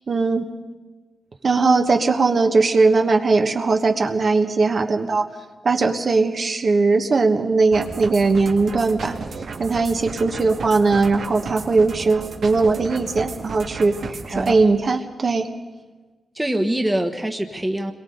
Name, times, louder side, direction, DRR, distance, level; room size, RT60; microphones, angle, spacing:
voice 1, 0.1-0.5 1.4-5.2 5.6-9.1 9.6-15.5, right 3 dB, 45° right, 4 dB, 1.3 m, -19 dB
sound 1, 7.7-14.6, right 4 dB, 80° right, 2.1 m, -34 dB
voice 2, 14.3-14.8 16.3-17.9, right 1 dB, 10° right, 3 dB, 1.2 m, -24 dB
29.0 x 22.5 x 4.0 m, 1.3 s
wide cardioid pair, 110°, 0 cm